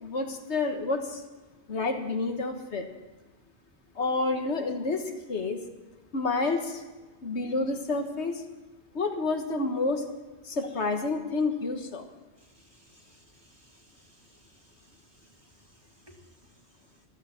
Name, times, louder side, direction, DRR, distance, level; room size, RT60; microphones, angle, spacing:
voice 1, 0.0-1.2 1.7-2.9 4.0-5.6 6.1-6.8 7.2-8.3 9.0-10.1 10.6-12.0, left 3 dB, 85° left, 5 dB, 1.8 m, -29 dB
voice 2, 12.4-16.2, right 1 dB, 25° right, 1 dB, 2.1 m, -61 dB
14.5 x 14.0 x 6.0 m, 1.3 s
omnidirectional pair, 1.1 m